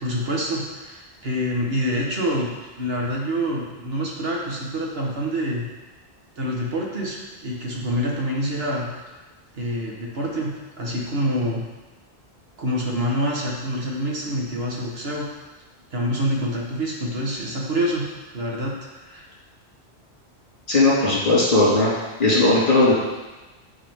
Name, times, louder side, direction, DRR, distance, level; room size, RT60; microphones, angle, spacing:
voice 1, 0.0-2.5 2.8-5.6 6.4-7.2 7.4-8.9 9.5-11.6 12.6-15.3 15.9-18.0 18.3-18.7 19.1-19.3, equal, 65° right, -3 dB, 1.5 m, -26 dB
voice 2, 20.7-21.9 22.2-22.9, left 2 dB, 50° left, -7 dB, 2.4 m, -17 dB
9.0 x 4.8 x 3.5 m, 1.1 s
omnidirectional pair, 1.1 m